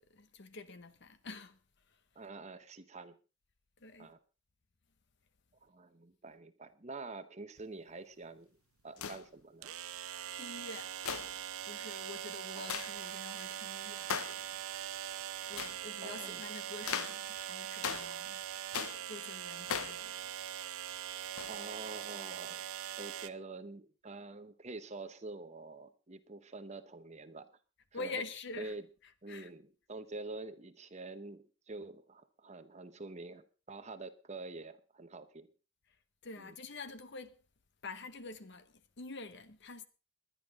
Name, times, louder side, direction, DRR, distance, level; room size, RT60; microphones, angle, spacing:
voice 1, 0.1-1.6 3.8-4.1 10.3-10.9 11.6-14.1 15.4-18.4 19.1-20.3 27.9-28.7 29.3-29.5 36.2-37.4 37.8-39.9, left 3 dB, 55° left, 1.0 m, -46 dB
voice 2, 2.1-3.2 4.0-4.2 5.6-8.5 8.8-9.7 12.5-12.8 16.0-16.4 21.5-22.7 23.0-27.5 27.9-28.2 28.6-28.9 29.2-35.5 36.4-36.6, right 3 dB, 30° right, 0.9 m, -47 dB
sound 1, 7.6-7.7 9.6-23.3, right 11 dB, 85° right, 0.7 m, -42 dB
sound 2, 9.0-9.3 11.0-11.4 12.7-12.9 14.1-14.4 15.5-15.8 16.9-17.2 17.8-18.2 18.7-19.1 19.7-20.0 21.4-21.6, left 7 dB, 85° left, 0.8 m, -38 dB
20.5 x 10.5 x 3.7 m
head